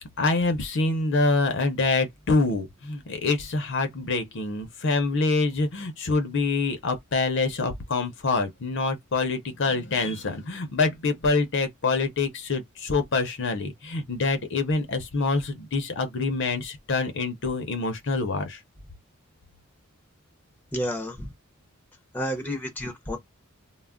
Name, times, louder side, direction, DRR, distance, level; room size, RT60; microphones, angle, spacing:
voice 1, 0.2-18.6, left 3 dB, 55° left, 0.6 m, -26 dB
voice 2, 20.7-21.3 22.1-23.2, equal, 10° left, 0.6 m, -30 dB
2.2 x 2.0 x 3.6 m
head